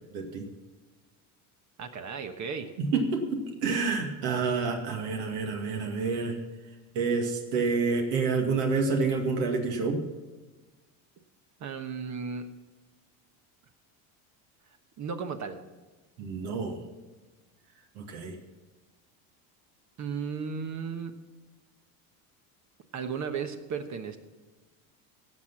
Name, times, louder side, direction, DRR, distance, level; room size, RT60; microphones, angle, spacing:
voice 1, 0.1-0.4 2.8-6.4 6.9-10.0 16.2-16.8 18.0-18.4, right 4 dB, 70° right, 2 dB, 2.2 m, -28 dB
voice 2, 1.8-2.7 11.6-12.6 15.0-15.6 20.0-21.1 22.9-24.2, right 6 dB, 40° right, 7 dB, 1.2 m, -35 dB
17.0 x 6.0 x 5.8 m, 1.2 s
supercardioid pair, 100°, 45 cm